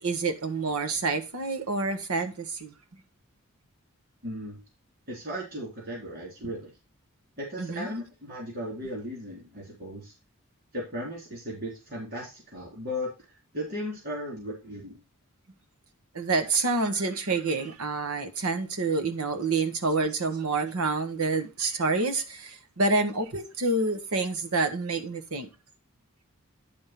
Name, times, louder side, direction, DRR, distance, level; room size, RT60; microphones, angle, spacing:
voice 1, 0.0-2.7 7.6-7.9 16.1-25.5, right 3 dB, 90° right, 1.2 m, -28 dB
voice 2, 4.2-4.6 5.1-6.7 7.4-10.1 10.7-13.1 13.5-15.0, equal, 50° right, 3.3 m, -36 dB
10.5 x 3.6 x 5.8 m
head